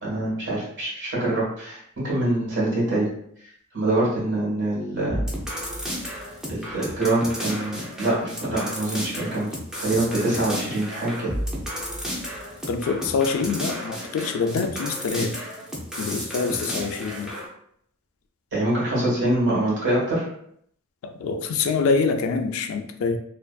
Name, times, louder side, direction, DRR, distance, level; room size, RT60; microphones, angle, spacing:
voice 1, 0.0-3.1 3.7-5.2 6.5-9.5 9.8-11.3 18.5-20.3, right 1 dB, 55° right, -7 dB, 1.3 m, -24 dB
sound 1, 5.1-17.5, equal, 5° right, 0.4 m, -32 dB
voice 2, 12.7-15.3 16.0-17.3 21.2-23.2, left 5 dB, 65° left, 6 dB, 0.3 m, -25 dB
2.5 x 2.4 x 2.2 m, 0.68 s
head